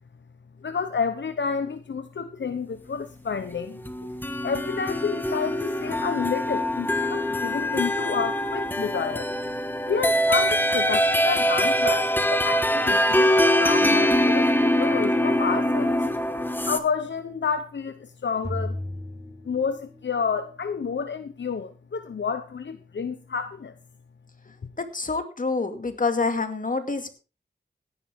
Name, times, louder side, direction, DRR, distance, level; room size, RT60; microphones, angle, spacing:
voice 1, 0.6-3.8 4.4-9.3 9.9-15.9 16.7-18.8 19.4-23.7, left 6 dB, 75° left, 9 dB, 1.0 m, -30 dB
sound 1, 3.8-16.8, equal, 10° left, 1.6 m, -23 dB
sound 2, 18.4-20.2, left 1 dB, 20° right, 6.3 m, -34 dB
voice 2, 24.8-27.1, left 3 dB, 45° left, 7 dB, 2.4 m, -27 dB
17.0 x 11.0 x 3.7 m, 0.33 s
wide cardioid pair, 70°, 19 cm